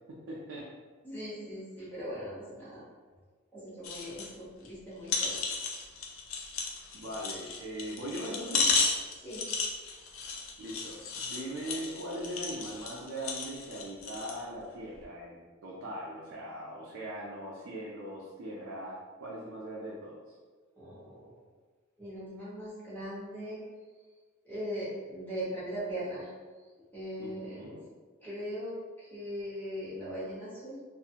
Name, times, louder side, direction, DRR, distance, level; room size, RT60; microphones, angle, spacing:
voice 1, 0.1-0.7 6.9-8.7 10.6-20.3 27.2-27.8, right 1 dB, 75° right, -5 dB, 0.4 m, -40 dB
voice 2, 1.0-2.9 3.5-5.3 9.2-9.4 20.8-21.3 22.0-23.6 24.4-26.3 26.9-27.8 28.2-30.8, equal, 10° left, -11 dB, 1.1 m, -39 dB
sound 1, 3.8-4.3 4.7-4.8 5.1-14.4 14.9-15.0, left 4 dB, 80° left, 0.4 m, -34 dB
2.5 x 2.4 x 2.7 m, 1.4 s
head